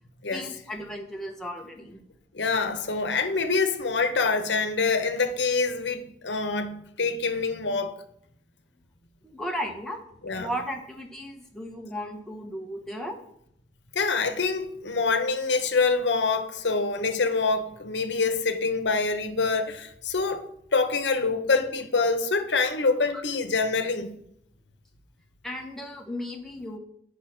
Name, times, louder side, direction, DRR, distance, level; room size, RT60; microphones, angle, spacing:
voice 1, 0.3-2.0 9.2-10.0 10.4-13.2 23.1-23.2 25.4-26.8, equal, ahead, 1.2 m, -35 dB
voice 2, 2.3-7.9 10.2-10.5 13.9-20.4 20.7-24.2, left 4 dB, 70° left, 1.0 m, -25 dB
8.1 x 5.4 x 5.9 m
head